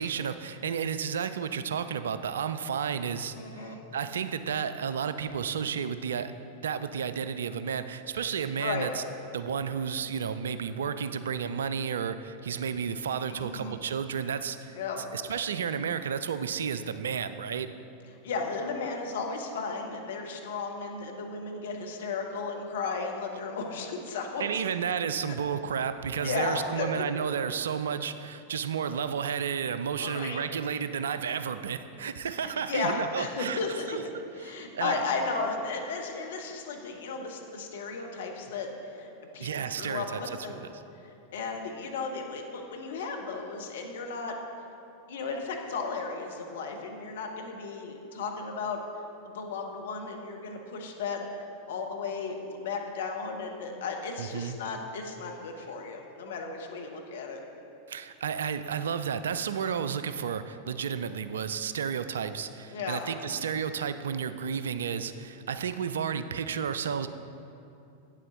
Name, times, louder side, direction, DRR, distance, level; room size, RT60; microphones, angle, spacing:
voice 1, 0.0-6.3 6.6-9.0 9.3-14.8 15.1-17.7 24.4-33.6 33.9-34.0 34.4-35.0 39.4-40.4 54.2-54.6 57.9-67.1, right 7 dB, 65° right, 12 dB, 0.3 m, -32 dB
voice 2, 3.3-3.8 8.6-8.9 13.3-13.7 14.7-15.0 18.2-24.4 25.3-25.4 26.2-27.0 30.0-30.4 32.4-34.0 34.4-38.7 38.9-40.7 41.0-44.3 45.1-48.8 49.3-51.2 51.7-57.4 62.7-63.4, left 4 dB, 60° left, 2 dB, 1.0 m, -34 dB
8.9 x 7.5 x 3.9 m, 2.7 s
figure-of-eight pair, 90°, 0 cm